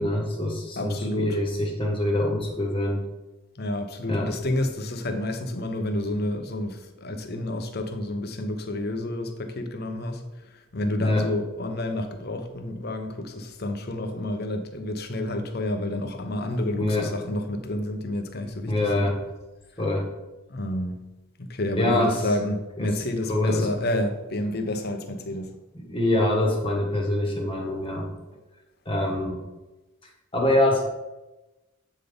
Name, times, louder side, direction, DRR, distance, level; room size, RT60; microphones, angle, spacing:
voice 1, 0.0-3.0 4.1-4.3 11.0-11.3 16.8-17.1 18.7-19.2 19.8-20.1 21.8-22.2 22.8-22.9 23.3-23.7 25.7-28.1 28.8-29.4 30.3-30.9, left 1 dB, 25° left, 0 dB, 1.3 m, -24 dB
voice 2, 0.8-1.4 3.5-19.1 20.5-21.0 21.4-25.6, left 1 dB, 50° left, 6 dB, 0.8 m, -29 dB
8.3 x 3.9 x 5.1 m, 1.1 s
head